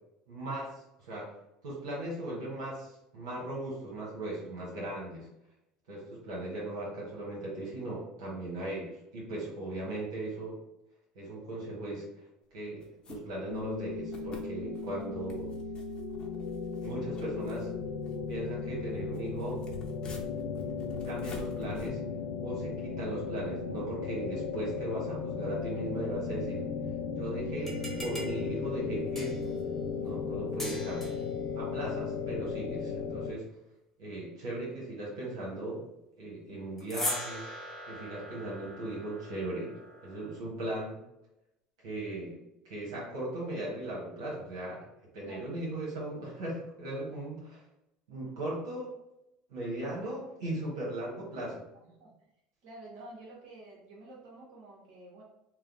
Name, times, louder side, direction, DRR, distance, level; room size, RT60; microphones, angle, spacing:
voice 1, 0.3-1.3 1.6-5.3 5.9-10.6 11.1-12.1 12.5-15.6 16.8-17.7 18.3-19.6 21.0-22.0 22.4-26.7 27.1-29.5 30.0-31.1 31.5-33.5 34.0-35.8 36.2-37.5 37.9-39.8 40.0-41.0 41.8-42.4 42.6-44.9 45.1-47.6 48.1-48.9 49.5-51.6, right 1 dB, 85° right, -5 dB, 1.2 m, -38 dB
sound 1, 12.8-13.2 13.6-13.7 14.1-14.4 14.7-15.0 15.3-18.5 19.0-21.9, left 2 dB, 30° left, 0.8 m, -49 dB
sound 2, 13.5-33.3, left 5 dB, 85° left, 0.4 m, -36 dB
sound 3, 27.6-29.6 30.6-31.3 36.8-40.4, left 1 dB, 10° left, 1.0 m, -41 dB
voice 2, 51.7-52.1 52.6-55.2, right 2 dB, 65° right, -4 dB, 1.3 m, -50 dB
3.1 x 2.2 x 3.9 m, 0.87 s
supercardioid pair, 90°, 3 cm